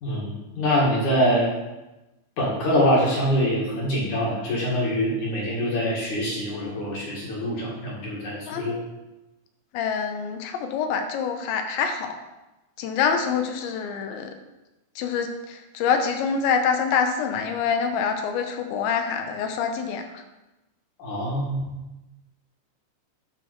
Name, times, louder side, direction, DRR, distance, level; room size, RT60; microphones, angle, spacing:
voice 1, 0.0-1.5 2.4-8.8 21.0-21.7, equal, 50° left, -4 dB, 2.6 m, -24 dB
voice 2, 8.5-8.9 9.7-12.1 12.8-14.3 15.0-20.2, left 6 dB, 80° left, 5 dB, 3.1 m, -26 dB
11.5 x 4.0 x 6.3 m, 1.0 s
omnidirectional pair, 5.2 m